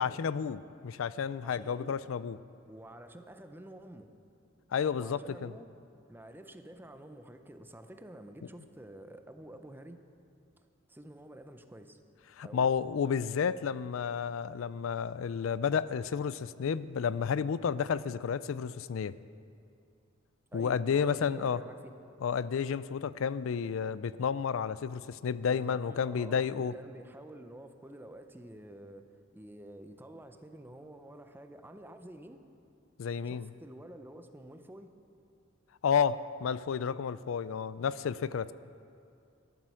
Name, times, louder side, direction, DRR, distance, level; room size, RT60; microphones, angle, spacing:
voice 1, 0.0-2.4 4.7-5.5 12.4-19.1 20.5-21.6 22.2-26.7 33.0-33.5 35.8-38.5, left 7 dB, 75° left, 17 dB, 0.4 m, -31 dB
voice 2, 1.4-2.0 2.7-4.1 5.0-5.7 6.1-10.0 10.9-12.0 12.4-12.7 20.5-21.9 25.5-29.1 29.3-32.4 33.2-34.9, right 1 dB, 10° right, 8 dB, 0.6 m, -49 dB
13.5 x 11.0 x 6.3 m, 2.5 s
head